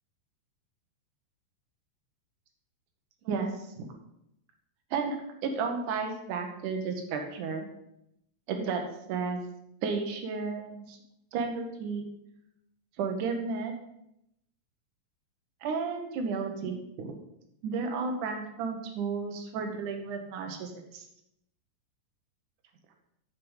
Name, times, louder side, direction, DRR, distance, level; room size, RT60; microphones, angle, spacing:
voice 1, 5.4-7.7 8.5-8.8 9.1-9.4 9.8-11.0 11.3-12.1 13.0-13.7 15.6-17.2 17.6-21.0, right 5 dB, 65° right, 4 dB, 2.5 m, -32 dB
7.3 x 6.5 x 5.6 m, 0.80 s
omnidirectional pair, 4.1 m